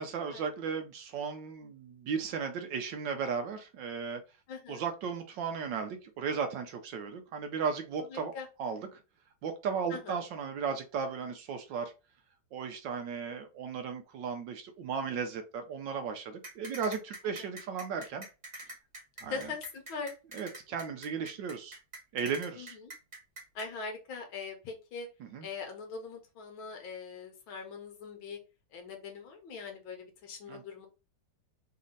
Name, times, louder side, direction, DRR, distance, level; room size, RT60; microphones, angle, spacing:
voice 1, 0.0-4.2 4.7-8.3 8.6-9.0 9.4-11.9 12.5-18.3 19.2-19.5 20.3-21.8 22.1-22.8 25.2-25.5 30.5-30.6, right 6 dB, 70° right, 1.2 m, -35 dB
voice 2, 4.5-4.8 8.1-8.5 9.9-10.2 17.4-17.5 19.2-20.1 22.5-22.9 23.6-25.1 25.4-28.4 28.7-30.9, left 5 dB, 75° left, 1.8 m, -42 dB
sound 1, 16.4-23.7, right 2 dB, 25° right, 1.2 m, -45 dB
4.1 x 2.8 x 3.9 m
omnidirectional pair, 2.3 m